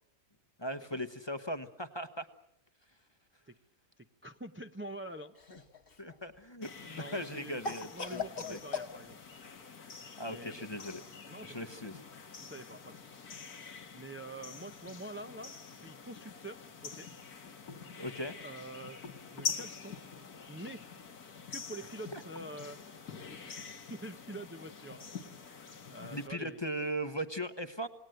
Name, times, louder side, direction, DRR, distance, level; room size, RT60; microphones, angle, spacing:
voice 1, 0.6-2.3 6.0-8.6 10.2-11.0 11.4-12.0 18.0-18.4 22.1-22.2 26.0-27.9, equal, 20° left, 10 dB, 1.0 m, -38 dB
voice 2, 4.0-5.3 7.0-7.6 7.9-9.2 10.2-10.7 11.3-11.7 12.4-13.1 13.9-17.1 18.4-19.0 19.3-19.9 20.5-20.8 21.5-22.8 23.3-25.1 25.9-26.6, right 1 dB, 10° right, 6 dB, 0.6 m, -46 dB
Cough, 5.3-6.1 7.6-8.9, left 4 dB, 40° left, 1.5 m, -38 dB
sound 1, 6.6-26.3, left 5 dB, 85° left, 2.2 m, -46 dB
28.0 x 19.5 x 7.9 m, 0.79 s
omnidirectional pair, 1.5 m